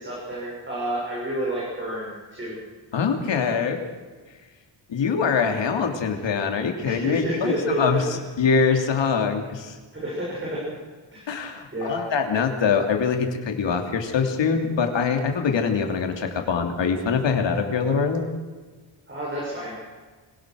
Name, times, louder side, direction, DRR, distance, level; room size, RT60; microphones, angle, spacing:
voice 1, 0.0-2.6 6.8-8.2 10.0-10.8 11.1-12.0 19.1-19.7, right 1 dB, 25° right, -5 dB, 7.5 m, -30 dB
voice 2, 2.9-3.8 4.9-9.8 11.3-18.3, left 5 dB, 65° left, 4 dB, 3.1 m, -24 dB
25.0 x 17.5 x 6.5 m, 1.4 s
wide cardioid pair, 135°, 47 cm